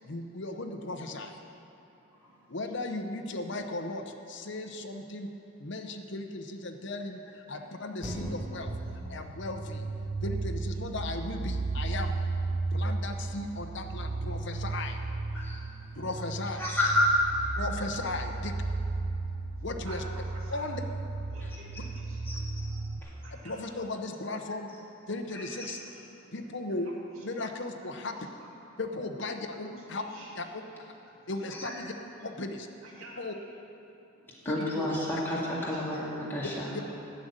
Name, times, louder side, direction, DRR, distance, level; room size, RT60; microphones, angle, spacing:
voice 1, 0.1-1.4 2.5-5.3 5.6-8.7 9.0-9.9 10.2-12.2 12.7-15.0 15.9-16.7 17.6-18.5 19.6-20.0 20.5-20.8 23.3-24.7 25.1-25.8 26.3-26.9 27.2-28.1 28.8-30.0 30.3-30.6 31.3-31.9 32.2-32.7 33.2-33.3 34.5-34.8 36.7-37.0, left 2 dB, 60° left, 5 dB, 0.9 m, -36 dB
sound 1, 8.0-16.8 17.3-17.4, equal, 5° right, 2.7 m, -46 dB
sound 2, 8.7-23.0, right 3 dB, 40° right, 0.5 m, -34 dB
voice 2, 16.6-17.1 21.4-21.8 22.2-22.4 23.0-23.1 25.3-25.8 31.5-31.7 34.4-36.7, left 1 dB, 10° left, -7 dB, 2.1 m, -30 dB
voice 3, 19.6-20.8 21.3-22.2 22.6-22.8 23.2-23.7 25.6-26.1 28.0-28.3 29.7-30.3 32.8-33.4 34.2-34.3 34.6-34.7 35.6-35.8, right 2 dB, 85° right, -4 dB, 2.1 m, -50 dB
11.5 x 6.6 x 8.8 m, 2.9 s
head